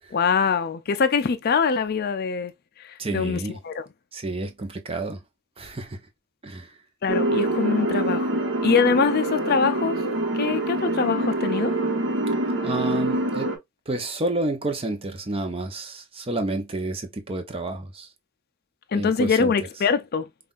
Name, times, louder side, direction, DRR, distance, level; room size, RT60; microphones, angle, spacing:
voice 1, 0.1-2.5 2.8-3.8 7.0-10.0 10.3-11.8 18.9-20.3, left 5 dB, 45° left, 0.4 m, -23 dB
voice 2, 3.0-3.6 4.1-5.2 5.6-6.0 6.4-6.7 12.6-13.5 13.9-18.1 18.9-19.5, right 2 dB, 25° right, 0.7 m, -30 dB
sound 1, 7.1-13.6, right 2 dB, 60° right, 1.1 m, -25 dB
5.4 x 2.4 x 2.4 m
head